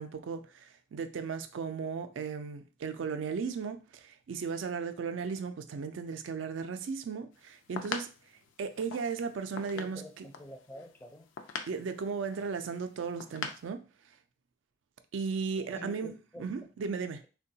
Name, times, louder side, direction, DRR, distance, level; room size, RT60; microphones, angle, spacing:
voice 1, 0.0-8.1 8.6-10.2 11.7-13.8 15.1-17.2, right 5 dB, 70° right, 0.4 m, -36 dB
sound 1, 7.4-13.7, left 5 dB, 80° left, 0.4 m, -43 dB
voice 2, 9.7-11.3 15.6-16.6, left 1 dB, 10° left, 0.4 m, -48 dB
3.6 x 2.2 x 2.7 m
head